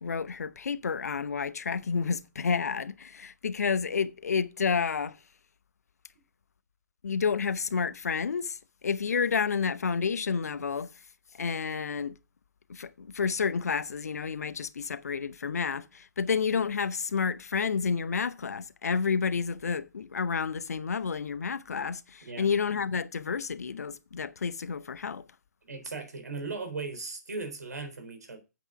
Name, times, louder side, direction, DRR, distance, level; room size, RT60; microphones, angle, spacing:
voice 1, 0.0-5.2 7.0-10.9 11.4-12.2 12.7-25.3, left 5 dB, 60° left, 0.7 m, -30 dB
voice 2, 25.6-28.4, right 4 dB, 65° right, 3.7 m, -37 dB
8.2 x 8.0 x 5.7 m
figure-of-eight pair, 125°, 10 cm